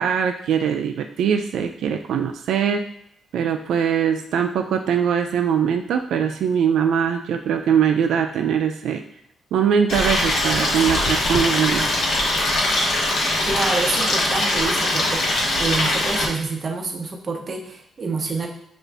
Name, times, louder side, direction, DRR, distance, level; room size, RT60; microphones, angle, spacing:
voice 1, 0.0-2.9 3.3-9.0 9.5-11.9, right 7 dB, 75° right, 4 dB, 0.3 m, -21 dB
Stream, 9.9-16.2, left 1 dB, 55° left, 1.0 m, -21 dB
voice 2, 13.5-18.5, right 4 dB, 30° right, 2 dB, 0.6 m, -27 dB
6.0 x 2.5 x 3.3 m, 0.72 s
cardioid pair, 170°, 0 cm